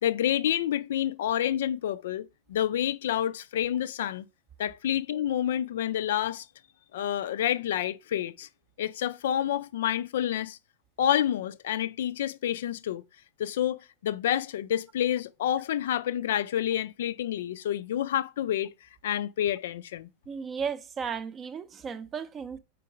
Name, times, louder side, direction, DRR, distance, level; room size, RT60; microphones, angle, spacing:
voice 1, 0.0-4.3 4.6-6.5 6.9-8.5 8.8-10.6 11.0-13.0 13.4-18.7 19.0-20.1, left 11 dB, 60° left, 0.3 m, -28 dB
voice 2, 20.3-22.6, right 6 dB, 25° right, 0.5 m, -35 dB
4.5 x 4.4 x 4.9 m
figure-of-eight pair, 90°, 0 cm